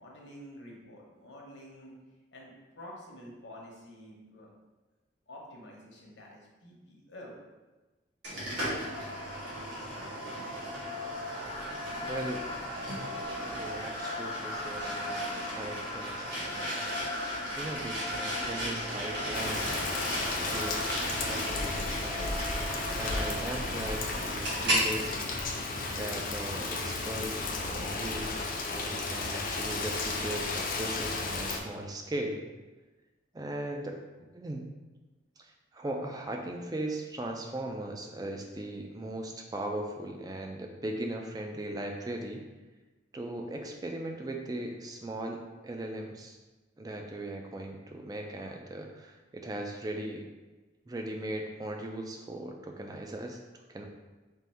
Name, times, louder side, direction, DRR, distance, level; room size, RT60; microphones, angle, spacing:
voice 1, 0.0-1.9 2.3-4.5 5.3-7.3, left 1 dB, 75° left, -2 dB, 0.9 m, -49 dB
sound 1, 8.2-24.9, equal, 65° right, 1.4 m, -35 dB
voice 2, 12.0-12.7 13.4-16.9 17.6-19.8 20.5-21.0 21.2-22.3 22.9-25.1 25.9-27.3 27.6-32.4 33.3-34.7 35.4-42.5 43.1-46.4 46.8-50.3 50.9-53.4 53.7-53.8, right 1 dB, 20° right, 2 dB, 0.3 m, -38 dB
Rain, 19.3-31.6, left 3 dB, 45° left, 0.4 m, -34 dB
3.6 x 2.6 x 4.2 m, 1.2 s
head